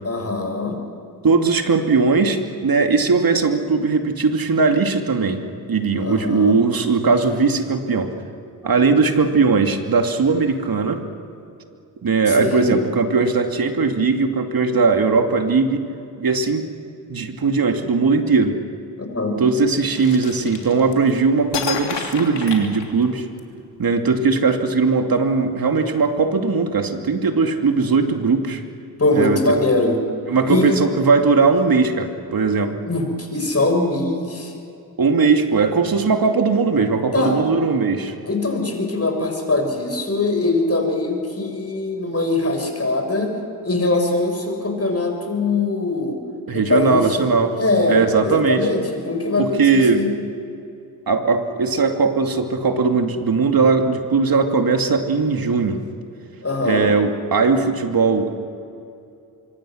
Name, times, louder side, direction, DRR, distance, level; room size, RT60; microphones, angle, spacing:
voice 1, 0.0-0.8 5.9-6.6 12.3-12.8 19.0-19.4 29.0-30.0 30.5-30.8 32.8-34.5 37.1-37.4 38.2-43.3 43.6-46.2 46.5-47.1 47.6-50.1 56.4-56.9, left 2 dB, 35° left, 3 dB, 6.7 m, -22 dB
voice 2, 1.2-5.4 5.7-8.1 8.6-11.0 12.0-15.8 16.2-16.7 17.1-18.6 19.4-23.2 23.8-28.6 29.1-29.6 30.3-32.8 35.0-38.1 46.5-47.6 47.9-48.7 49.4-50.0 51.1-55.8 56.6-58.3, right 4 dB, 50° right, 5 dB, 2.6 m, -19 dB
sound 1, 20.0-21.1 21.5-23.4, left 7 dB, 70° left, 3.1 m, -29 dB
25.0 x 24.5 x 6.5 m, 2.5 s
supercardioid pair, 45°, 44 cm